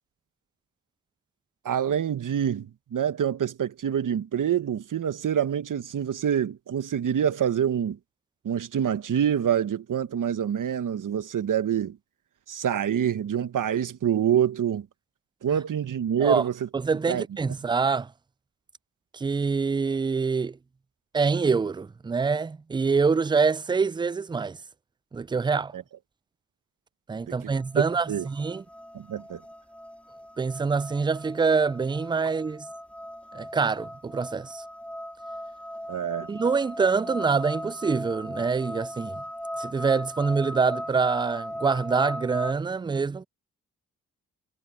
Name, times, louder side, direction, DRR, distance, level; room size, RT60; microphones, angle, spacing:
voice 1, 1.6-8.0 8.4-12.0 12.5-14.9 15.4-16.5 17.1-17.2 25.7-25.8 27.7-27.8 28.1-28.3 28.9-29.4 35.9-36.3, right 9 dB, 65° right, 1.5 m, -26 dB
voice 2, 16.7-18.1 19.1-20.6 21.1-24.6 25.1-25.7 27.1-28.6 30.4-32.7 33.3-34.6 36.3-39.2 39.6-43.3, right 5 dB, 15° right, 0.3 m, -25 dB
sound 1, 27.5-42.5, equal, 5° left, 2.4 m, -38 dB
supercardioid pair, 45°, 33 cm